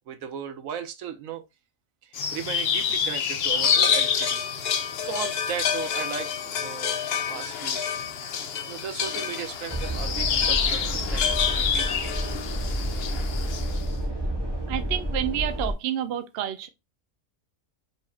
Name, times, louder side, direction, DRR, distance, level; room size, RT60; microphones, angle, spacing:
voice 1, 0.1-1.4 2.0-4.4 5.0-7.9 8.7-12.0, right 8 dB, 80° right, 1.1 m, -36 dB
sound 1, 2.1-13.8, left 7 dB, 55° left, 0.8 m, -27 dB
sound 2, 9.7-15.7, equal, 20° right, 1.4 m, -29 dB
voice 2, 14.7-16.7, right 11 dB, 60° right, 0.7 m, -29 dB
4.9 x 4.1 x 2.4 m
omnidirectional pair, 1.4 m